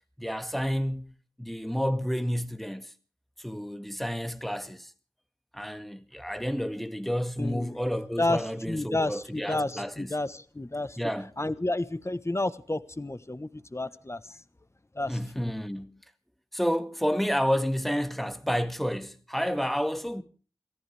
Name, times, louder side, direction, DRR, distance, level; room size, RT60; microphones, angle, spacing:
voice 1, 0.2-2.9 3.4-4.9 5.5-10.1 11.0-11.3 15.1-16.0 16.5-20.2, equal, ahead, 1.8 m, -30 dB
voice 2, 7.4-7.8 8.2-8.4 8.7-11.0 11.4-14.4 14.9-15.5, left 2 dB, 35° left, 1.3 m, -31 dB
28.5 x 14.5 x 3.5 m
wide cardioid pair, 40°, 9 cm